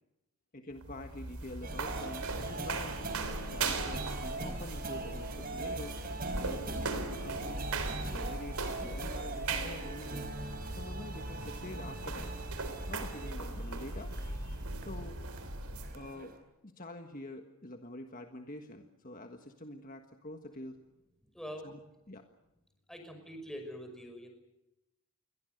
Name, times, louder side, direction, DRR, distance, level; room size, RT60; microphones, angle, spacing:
voice 1, 0.5-3.0 3.5-6.0 6.3-7.7 8.0-10.3 10.8-12.3 12.9-15.2 15.9-16.4 16.6-20.8 21.6-21.8 22.1-22.3, left 1 dB, 40° left, 5 dB, 1.6 m, -46 dB
sound 1, 0.7-16.0, right 2 dB, 80° right, 4.1 m, -38 dB
sound 2, 1.6-16.4, right 3 dB, 40° right, 4.3 m, -42 dB
voice 2, 21.3-21.7 22.9-24.3, equal, ahead, 5 dB, 5.6 m, -44 dB
29.0 x 22.5 x 6.7 m, 0.93 s
head